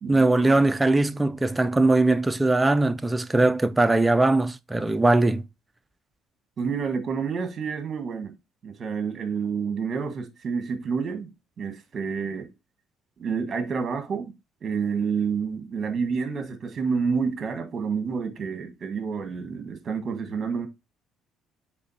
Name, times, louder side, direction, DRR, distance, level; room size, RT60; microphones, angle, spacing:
voice 1, 0.1-5.4, right 2 dB, 10° right, 0.4 m, -20 dB
voice 2, 6.6-8.3 8.6-11.3 11.6-12.5 13.2-14.3 14.6-20.7, right 5 dB, 35° right, 1.5 m, -29 dB
7.7 x 3.7 x 4.2 m
cardioid pair, 150°, 0 cm